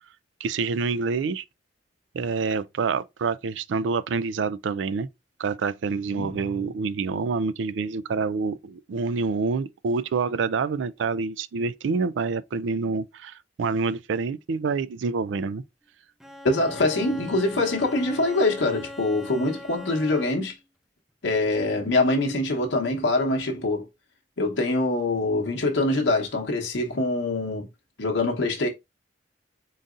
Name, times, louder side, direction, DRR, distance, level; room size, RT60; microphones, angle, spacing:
voice 1, 0.4-1.4 2.1-5.1 5.4-15.6, right 4 dB, 85° right, 0.4 m, -27 dB
voice 2, 6.1-6.6 16.4-20.6 21.2-23.9 24.4-27.7 28.0-28.7, left 2 dB, 90° left, 0.9 m, -24 dB
Bowed string instrument, 16.2-20.6, left 1 dB, ahead, 0.3 m, -41 dB
3.9 x 3.9 x 2.4 m
head